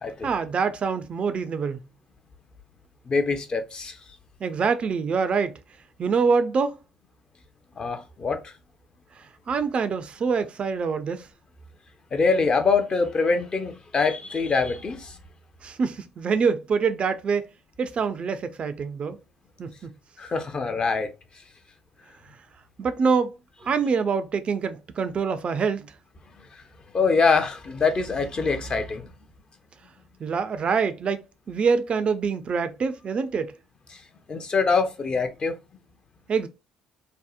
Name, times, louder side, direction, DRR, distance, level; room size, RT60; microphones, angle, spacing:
voice 1, 0.2-1.8 4.4-5.6 6.0-6.8 9.5-11.3 15.6-17.5 17.8-19.2 19.6-19.9 22.8-23.3 23.6-25.9 30.2-33.5 36.3-36.5, right 5 dB, 45° right, 0.3 m, -25 dB
voice 2, 3.1-3.9 7.8-8.5 12.1-15.2 20.2-21.1 26.9-29.1 34.3-35.5, left 4 dB, 35° left, 0.5 m, -24 dB
2.7 x 2.0 x 2.4 m
hypercardioid pair, 60°, 3 cm